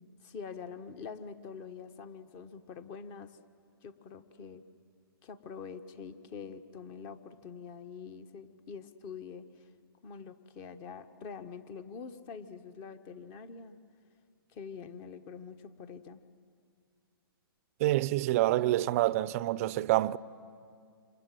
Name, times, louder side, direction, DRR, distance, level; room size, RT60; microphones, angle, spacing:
voice 1, 0.0-3.3 3.8-4.6 5.2-9.4 10.0-13.8 14.5-16.2, left 6 dB, 30° left, 1.3 m, -45 dB
voice 2, 17.8-20.2, right 16 dB, 40° right, 0.6 m, -27 dB
28.5 x 26.5 x 7.8 m
hypercardioid pair, 130°, 12 cm